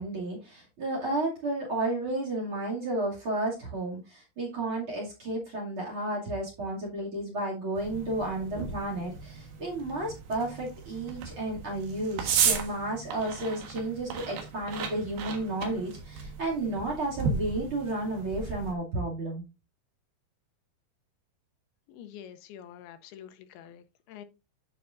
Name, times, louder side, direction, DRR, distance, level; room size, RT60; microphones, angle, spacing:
voice 1, 0.0-19.4, right 2 dB, 35° right, -2 dB, 2.9 m, -32 dB
sound 1, 7.8-18.7, right 6 dB, 75° right, 3.3 m, -34 dB
voice 2, 21.9-24.2, left 9 dB, 80° left, 10 dB, 2.6 m, -47 dB
10.0 x 6.8 x 2.6 m, 0.28 s
omnidirectional pair, 4.5 m